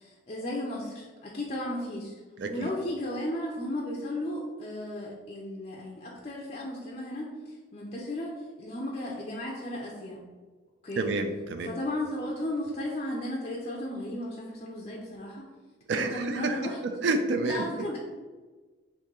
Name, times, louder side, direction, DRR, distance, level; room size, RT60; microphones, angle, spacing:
voice 1, 0.0-2.1 2.4-8.3 8.6-10.2 10.8-11.1 11.6-15.5 15.9-16.8 17.4-18.0, left 1 dB, 30° left, -3 dB, 0.4 m, -35 dB
voice 2, 2.4-2.7 11.0-11.7 15.9-16.6 16.8-17.6, right 3 dB, 60° right, 7 dB, 0.3 m, -29 dB
3.0 x 2.6 x 3.6 m, 1.3 s
head